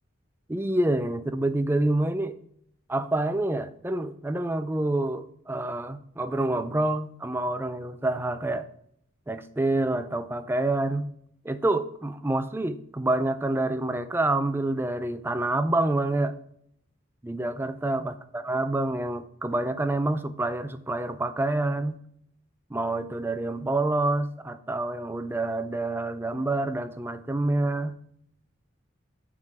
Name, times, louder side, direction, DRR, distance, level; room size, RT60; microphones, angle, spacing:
voice 1, 0.5-2.4 2.9-8.7 9.3-11.1 11.4-16.4 17.2-22.0 22.7-28.0, right 2 dB, 10° right, 11 dB, 0.4 m, -27 dB
9.1 x 3.7 x 5.9 m, 0.68 s
head